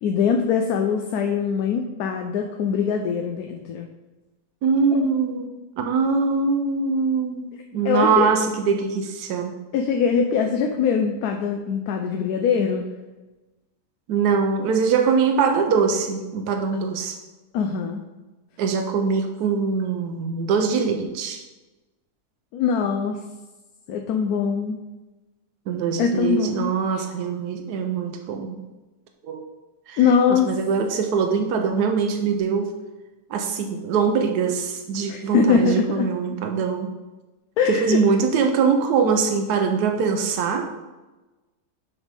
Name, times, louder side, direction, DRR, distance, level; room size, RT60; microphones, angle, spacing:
voice 1, 0.0-3.9 4.9-5.0 7.8-8.3 9.7-12.8 17.5-18.0 22.5-23.2 23.9-24.8 26.0-27.0 30.0-30.5 35.1-36.1 37.6-38.0, left 6 dB, 75° left, 3 dB, 1.1 m, -22 dB
voice 2, 4.6-5.5 5.8-9.5 14.1-17.2 18.6-21.4 25.7-28.6 29.2-29.4 29.9-30.0 30.3-32.7 33.3-36.9 37.7-40.7, right 5 dB, 85° right, 4 dB, 1.2 m, -22 dB
7.2 x 3.3 x 5.2 m, 1.1 s
omnidirectional pair, 1.7 m